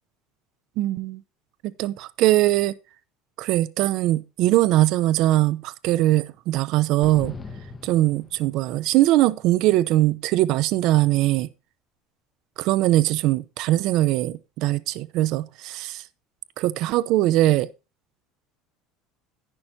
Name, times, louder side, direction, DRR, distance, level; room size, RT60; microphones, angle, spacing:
voice 1, 0.8-1.2 1.6-2.8 3.4-7.4 7.8-11.5 12.6-16.0 16.6-17.7, right 15 dB, 60° right, 0.7 m, -21 dB
sound 1, 7.0-8.9, left 4 dB, 20° left, 1.4 m, -40 dB
11.0 x 10.5 x 2.8 m
cardioid pair, 135°, 0 cm